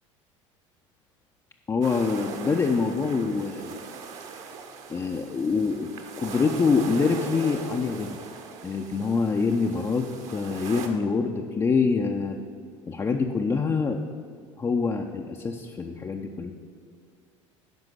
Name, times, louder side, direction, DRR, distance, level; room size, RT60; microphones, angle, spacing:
voice 1, 1.7-3.8 4.9-5.9 6.2-8.2 8.6-12.4 12.9-14.0 14.6-16.5, left 4 dB, 20° left, 2 dB, 0.6 m, -25 dB
sound 1, 1.8-10.9, right 5 dB, 45° right, 1.2 m, -39 dB
10.5 x 5.3 x 7.7 m, 2.2 s
figure-of-eight pair, 70°, 16 cm